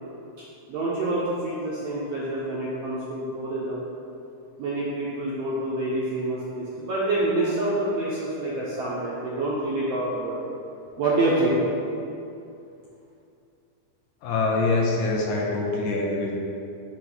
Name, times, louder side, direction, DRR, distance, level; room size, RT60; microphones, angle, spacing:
voice 1, 0.7-3.8 4.6-10.3 11.0-11.6, right 2 dB, 75° right, -8 dB, 1.4 m, -27 dB
voice 2, 14.2-16.3, left 3 dB, 80° left, -2 dB, 1.9 m, -24 dB
6.3 x 3.0 x 5.3 m, 2.6 s
omnidirectional pair, 3.7 m